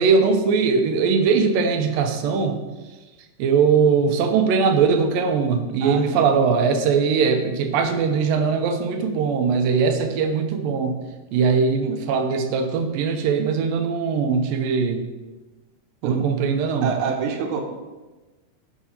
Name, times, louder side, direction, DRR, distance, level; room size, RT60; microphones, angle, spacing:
voice 1, 0.0-2.6 3.4-11.0 11.3-15.1 16.0-16.9, right 5 dB, 85° right, 6 dB, 2.6 m, -20 dB
voice 2, 5.8-6.2 11.8-12.0 16.0-16.2 16.8-17.6, right 6 dB, 70° right, 3 dB, 2.3 m, -27 dB
11.0 x 5.8 x 4.3 m, 1.2 s
omnidirectional pair, 3.9 m